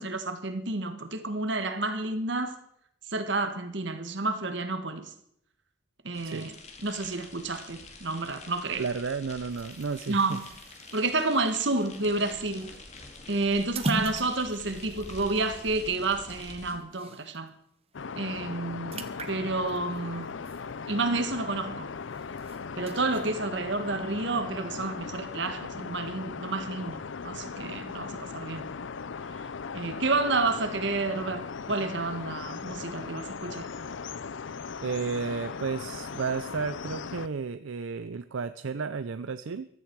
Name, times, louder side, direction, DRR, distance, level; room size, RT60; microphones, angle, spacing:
voice 1, 0.0-2.5 3.1-5.1 6.0-6.6 6.8-8.9 10.1-10.4 10.9-12.7 13.3-17.5 18.2-20.4 20.9-21.9 22.8-28.7 29.7-33.7, right 3 dB, 65° right, 1.6 m, -30 dB
sound 1, 6.1-16.7, left 3 dB, 35° left, 2.2 m, -47 dB
voice 2, 8.8-10.4 16.7-16.8 34.8-39.7, right 5 dB, 80° right, 0.5 m, -33 dB
sound 2, 9.5-17.5 17.9-18.1 18.3-21.3 21.7-23.3, right 1 dB, 30° right, 1.1 m, -41 dB
sound 3, 17.9-37.3, left 5 dB, 70° left, 0.6 m, -38 dB
15.5 x 14.0 x 4.7 m
head